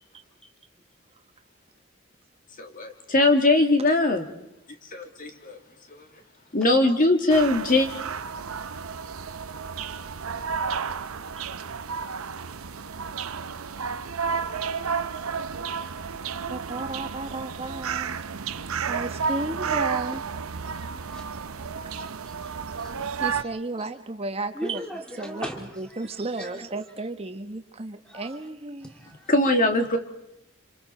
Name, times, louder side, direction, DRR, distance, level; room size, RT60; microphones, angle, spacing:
voice 1, 2.6-4.3 4.9-5.6 5.9-6.0 6.5-7.9 29.3-30.0, left 2 dB, 40° left, 5 dB, 2.1 m, -21 dB
sound 1, 7.3-23.4, right 6 dB, 85° right, 0.7 m, -32 dB
voice 2, 16.5-18.2 18.9-20.2 23.2-24.8 25.2-28.9, right 2 dB, 30° right, 7 dB, 1.2 m, -33 dB
voice 3, 20.7-21.2 22.3-22.4 22.8-23.1 24.5-25.6 26.4-26.6 28.0-28.4 29.0-29.1, equal, 5° left, 2 dB, 2.7 m, -37 dB
27.0 x 26.5 x 4.4 m, 0.87 s
head